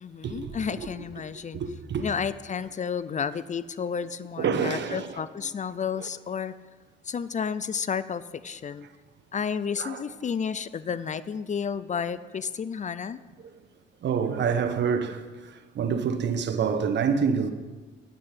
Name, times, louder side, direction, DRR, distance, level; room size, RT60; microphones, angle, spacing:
voice 1, 0.0-1.6 2.0-6.5 7.0-8.9 9.3-13.2, left 6 dB, 35° left, 0.6 m, -31 dB
voice 2, 1.5-2.0 4.4-5.2 9.8-10.0 14.0-15.2 15.7-17.5, right 6 dB, 65° right, 1.3 m, -26 dB
10.0 x 9.7 x 9.0 m
cardioid pair, 90°, 20 cm